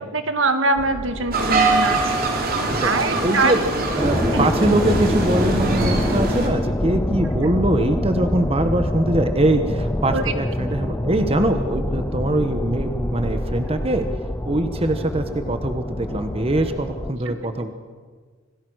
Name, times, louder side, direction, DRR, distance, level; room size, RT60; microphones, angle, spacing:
voice 1, 0.1-2.2 2.8-3.5 4.3-4.5 10.1-10.3, right 3 dB, 70° right, 8 dB, 1.9 m, -22 dB
sound 1, 0.8-17.1, left 1 dB, 10° left, 0.7 m, -26 dB
sound 2, 1.3-6.5, right 2 dB, 45° right, 3.4 m, -23 dB
voice 2, 3.2-3.6 4.0-14.1 14.4-17.7, right 1 dB, 30° right, 8 dB, 1.3 m, -22 dB
27.0 x 19.0 x 6.4 m, 1.5 s
head